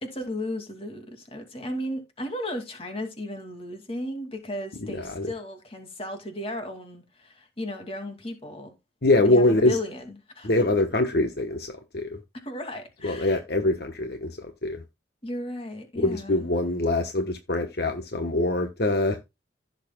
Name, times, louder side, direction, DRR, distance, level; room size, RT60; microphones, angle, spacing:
voice 1, 0.0-8.7 9.2-10.5 12.3-13.4 15.2-16.5, left 1 dB, 30° left, 2.4 m, -35 dB
voice 2, 9.0-9.8 10.4-12.2 13.0-14.8 16.0-19.2, left 2 dB, 60° left, 1.1 m, -24 dB
16.0 x 6.7 x 2.3 m
head